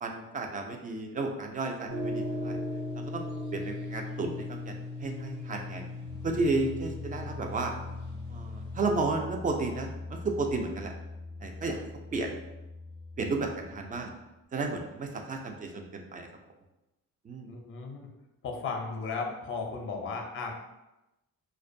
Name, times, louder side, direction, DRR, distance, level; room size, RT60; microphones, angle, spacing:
voice 1, 0.0-2.6 3.1-3.2 3.5-5.8 6.2-7.7 8.3-10.9 11.4-11.9 12.1-12.4 13.2-14.1 14.5-16.3 17.2-17.5, right 3 dB, 25° right, 3 dB, 0.3 m, -32 dB
sound 1, 1.9-9.1, left 2 dB, 85° right, 1.1 m, -38 dB
sound 2, 5.5-14.3, left 3 dB, 60° right, 0.7 m, -43 dB
voice 2, 17.5-18.1 18.4-20.5, left 4 dB, 35° left, 2 dB, 0.5 m, -35 dB
2.4 x 2.1 x 2.5 m, 0.96 s
cardioid pair, 75°, 35 cm